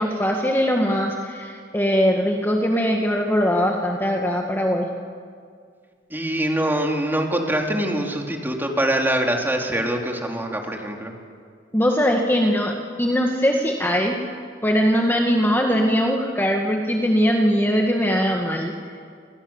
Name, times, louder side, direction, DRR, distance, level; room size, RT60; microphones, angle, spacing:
voice 1, 0.0-4.9 11.7-14.2 14.6-18.7, equal, 10° left, 1 dB, 1.8 m, -21 dB
voice 2, 6.1-11.1, right 1 dB, 10° right, 1 dB, 3.4 m, -24 dB
29.0 x 27.5 x 7.3 m, 2.1 s
head